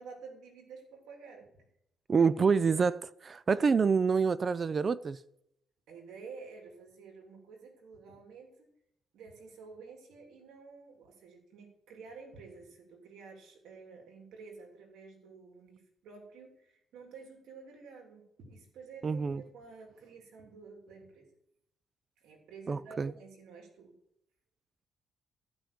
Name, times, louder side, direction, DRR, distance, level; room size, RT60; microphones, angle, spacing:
voice 1, 0.0-1.5 5.9-8.7 9.1-21.3 22.2-23.9, right 4 dB, 85° right, 3.1 m, -51 dB
voice 2, 2.1-5.2 19.0-19.4 22.7-23.1, right 5 dB, 40° right, 0.4 m, -27 dB
14.5 x 5.9 x 8.4 m
cardioid pair, 90°, 0 cm